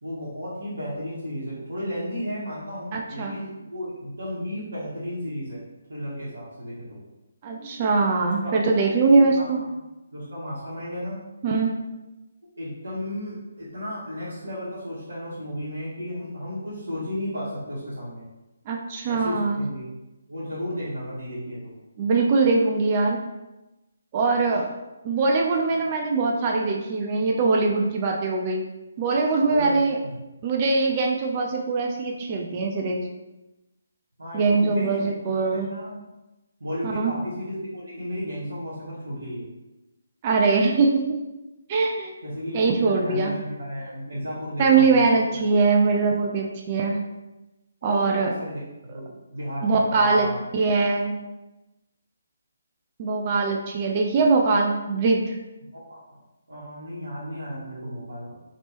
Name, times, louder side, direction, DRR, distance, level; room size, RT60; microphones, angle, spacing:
voice 1, 0.0-5.6 5.9-7.0 8.4-8.6 9.1-9.5 10.1-11.2 12.5-18.2 19.1-19.8 20.3-21.7 29.5-30.1 34.2-35.1 35.5-36.0 36.6-39.5 42.2-45.3 47.8-50.4 55.7-56.2 56.5-58.3, equal, 75° right, -10 dB, 1.2 m, -34 dB
voice 2, 2.9-3.3 7.4-9.6 11.4-11.8 18.7-19.6 22.0-23.2 24.1-24.7 25.0-28.6 29.0-30.0 30.4-33.0 34.3-35.7 36.8-37.1 40.2-41.2 41.7-42.1 42.5-43.3 44.6-47.0 47.8-48.3 49.6-50.3 50.5-51.2 53.0-55.3, right 4 dB, 30° right, 0 dB, 0.4 m, -22 dB
2.9 x 2.9 x 2.9 m, 1.0 s
figure-of-eight pair, 145°, 0 cm